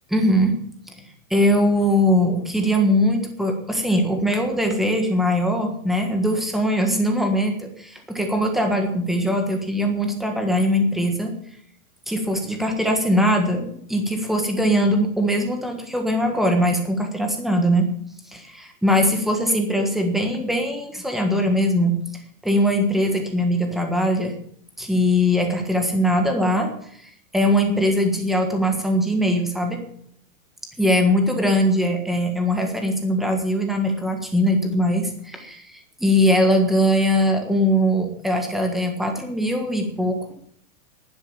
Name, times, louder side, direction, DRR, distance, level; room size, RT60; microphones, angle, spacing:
voice 1, 0.1-0.6 1.0-11.3 12.1-17.9 18.3-21.9 22.4-24.3 24.8-26.7 27.0-29.8 30.8-40.2, equal, ahead, 3 dB, 1.5 m, -21 dB
11.5 x 10.5 x 7.1 m, 0.65 s
supercardioid pair, 170°, 42 cm